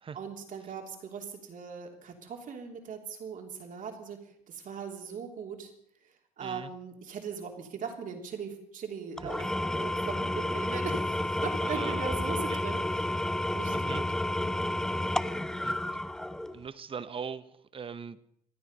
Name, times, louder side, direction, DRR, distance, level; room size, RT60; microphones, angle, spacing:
voice 1, 0.1-5.7 6.0-14.0, right 6 dB, 50° right, 3 dB, 3.3 m, -40 dB
Engine / Tools, 9.2-16.6, left 1 dB, 5° left, 0.6 m, -31 dB
voice 2, 11.6-12.1 12.5-12.6 13.7-14.0 15.6-15.7 16.5-17.5 17.7-18.2, right 6 dB, 30° right, 14 dB, 0.9 m, -40 dB
27.0 x 9.7 x 5.4 m, 0.74 s
cardioid pair, 110°, 17 cm